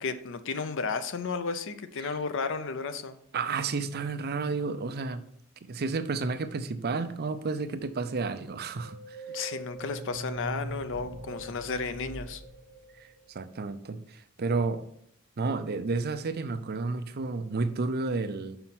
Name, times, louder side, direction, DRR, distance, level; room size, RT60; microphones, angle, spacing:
voice 1, 0.0-3.2 9.3-12.4, left 4 dB, 60° left, 11 dB, 0.6 m, -33 dB
voice 2, 3.3-5.2 5.6-9.2 13.0-14.8 15.4-18.6, right 4 dB, 45° right, 11 dB, 0.5 m, -31 dB
sound 1, 8.8-13.4, right 1 dB, 75° right, 1.0 m, -41 dB
5.8 x 5.4 x 5.9 m, 0.71 s
head